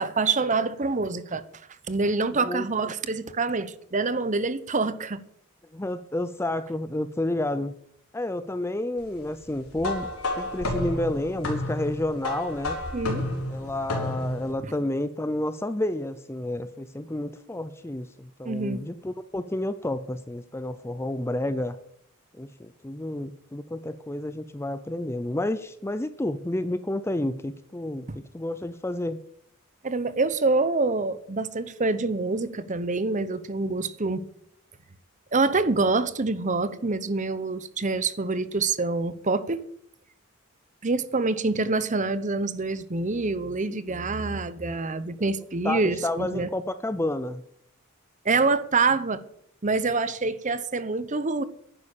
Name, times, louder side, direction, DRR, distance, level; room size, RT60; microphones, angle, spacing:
voice 1, 0.0-1.4 1.9-5.2 12.9-13.3 14.6-14.7 18.4-18.8 28.1-28.2 29.8-34.2 35.3-39.6 40.8-46.5 48.2-49.2 49.6-51.4, right 3 dB, 35° right, 0.9 m, -26 dB
voice 2, 2.3-2.7 5.7-7.7 8.1-10.1 10.4-12.8 13.5-21.8 22.4-28.1 28.3-29.2 45.6-47.4, left 1 dB, 10° left, 0.5 m, -30 dB
sound 1, 9.8-14.5, left 1 dB, 85° left, 4.2 m, -31 dB
11.0 x 9.9 x 7.2 m
head